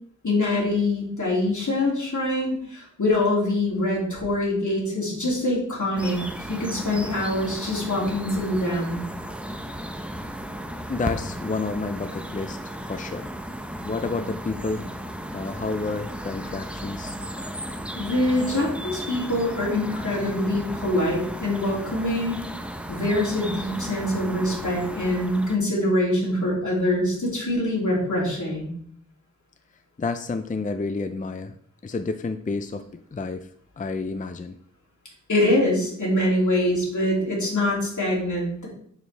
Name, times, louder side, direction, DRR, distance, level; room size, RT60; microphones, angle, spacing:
voice 1, 0.2-6.2 6.5-9.0 18.0-22.4 22.9-28.7 35.3-38.7, left 1 dB, 75° left, -4 dB, 2.7 m, -24 dB
sound 1, 6.0-25.6, equal, 5° right, 0.7 m, -35 dB
voice 2, 10.9-12.6 12.9-13.3 13.8-14.9 15.3-17.2 30.0-31.6 31.8-32.8 33.1-33.5 33.8-34.6, left 3 dB, 25° left, 9 dB, 0.4 m, -30 dB
6.7 x 6.7 x 3.3 m, 0.64 s
wide cardioid pair, 70°, 30 cm